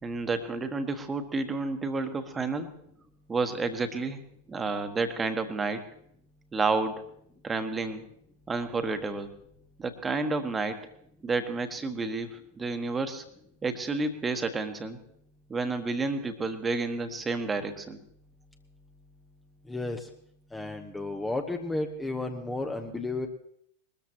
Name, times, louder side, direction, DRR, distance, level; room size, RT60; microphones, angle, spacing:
voice 1, 0.0-2.7 3.3-4.2 4.5-5.8 6.5-7.0 7.4-8.0 8.5-9.3 9.8-10.8 11.2-13.2 13.6-15.0 15.5-18.0, right 3 dB, 15° right, 8 dB, 1.4 m, -30 dB
voice 2, 19.7-20.1 20.5-23.3, left 2 dB, 10° left, 4 dB, 0.9 m, -32 dB
22.0 x 13.5 x 3.0 m, 0.70 s
figure-of-eight pair, 90°, 0 cm